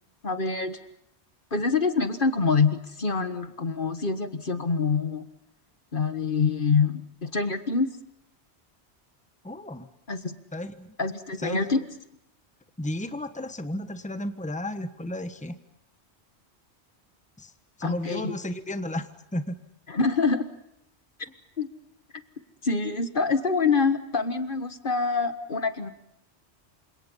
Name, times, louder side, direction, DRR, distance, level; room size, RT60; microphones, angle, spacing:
voice 1, 0.2-0.8 1.5-5.3 5.9-8.0 10.1-10.4 11.0-11.8 17.8-18.4 19.9-20.4 21.6-21.7 22.6-25.9, left 4 dB, 50° left, 10 dB, 1.7 m, -25 dB
voice 2, 9.4-9.9 10.5-10.9 11.4-11.6 12.8-15.6 17.4-17.5 17.8-19.6, left 1 dB, 5° left, 9 dB, 1.3 m, -33 dB
28.5 x 26.5 x 5.6 m, 0.79 s
omnidirectional pair, 1.1 m